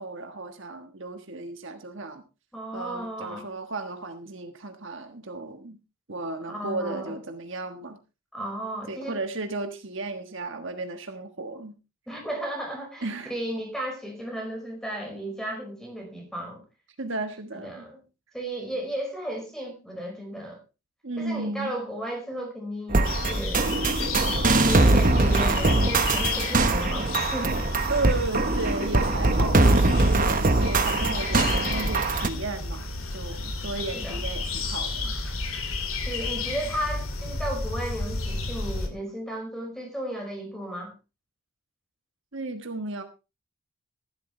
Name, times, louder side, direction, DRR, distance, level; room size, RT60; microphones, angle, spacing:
voice 1, 0.0-2.2 2.7-5.8 6.1-8.0 8.9-11.8 13.0-13.3 17.0-17.8 21.0-21.7 27.9-35.1 42.3-43.0, right 3 dB, 60° right, 6 dB, 1.4 m, -34 dB
voice 2, 2.5-3.5 6.5-7.1 8.3-9.2 12.1-16.6 17.6-18.0 18.3-20.6 21.2-23.8 24.6-27.6 33.9-34.2 36.0-40.9, right 1 dB, ahead, 1 dB, 5.1 m, -34 dB
sound 1, 22.9-32.3, right 2 dB, 40° right, 1.1 m, -22 dB
sound 2, 23.0-38.9, left 3 dB, 70° left, 2.6 m, -32 dB
15.0 x 12.0 x 3.3 m, 0.29 s
head